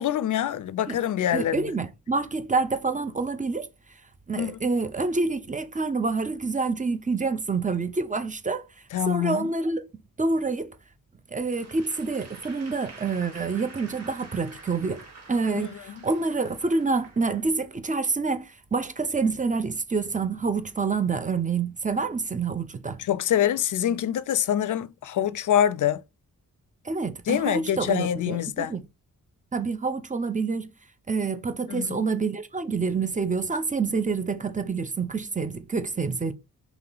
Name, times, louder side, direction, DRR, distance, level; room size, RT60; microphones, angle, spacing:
voice 1, 0.0-1.6 4.4-4.6 8.9-9.5 15.5-15.7 23.0-26.0 27.3-28.8 31.7-32.1, left 10 dB, 60° left, 0.5 m, -25 dB
voice 2, 1.3-3.7 4.3-8.7 9.1-9.8 10.2-10.7 11.3-15.0 15.3-23.0 26.8-28.8 29.5-30.7 31.1-36.3, right 4 dB, 20° right, 0.6 m, -27 dB
Applause / Crowd, 11.5-17.8, right 3 dB, 45° right, 1.7 m, -47 dB
4.0 x 2.8 x 3.9 m
cardioid pair, 90°, 35 cm